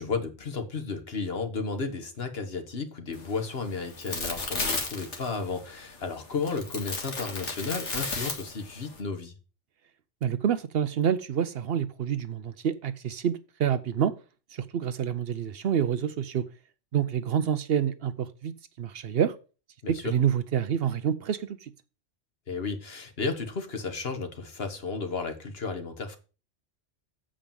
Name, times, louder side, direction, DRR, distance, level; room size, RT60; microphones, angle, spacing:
voice 1, 0.0-9.3 19.8-20.1 22.5-26.2, left 4 dB, 60° left, 1.5 m, -33 dB
sound 1, 3.1-9.0, left 3 dB, 90° left, 2.0 m, -35 dB
voice 2, 10.2-14.1 14.7-16.4 16.9-19.3 19.9-21.5, right 8 dB, 65° right, 0.8 m, -27 dB
7.5 x 5.1 x 6.9 m
omnidirectional pair, 1.2 m